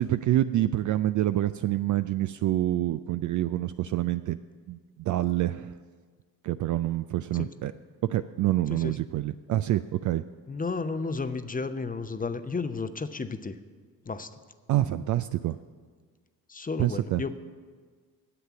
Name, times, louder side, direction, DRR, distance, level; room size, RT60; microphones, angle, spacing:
voice 1, 0.0-4.4 4.7-5.7 6.4-7.7 8.1-10.2 14.7-15.6 16.8-17.2, right 14 dB, 40° right, 12 dB, 0.4 m, -27 dB
voice 2, 10.5-13.6 14.1-14.3 16.5-17.4, left 4 dB, 15° left, 11 dB, 0.8 m, -32 dB
9.9 x 8.0 x 8.6 m, 1.5 s
hypercardioid pair, 50°, 49 cm